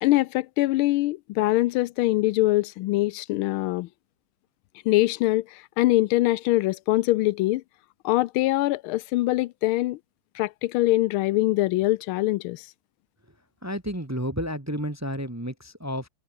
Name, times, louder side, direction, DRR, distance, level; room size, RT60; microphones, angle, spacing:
voice 1, 0.0-3.9 4.9-5.4 5.8-7.6 8.0-10.0 10.4-12.6, left 18 dB, 85° left, 1.4 m, -23 dB
voice 2, 13.6-16.1, equal, 10° right, 1.0 m, -31 dB
omnidirectional pair, 2.3 m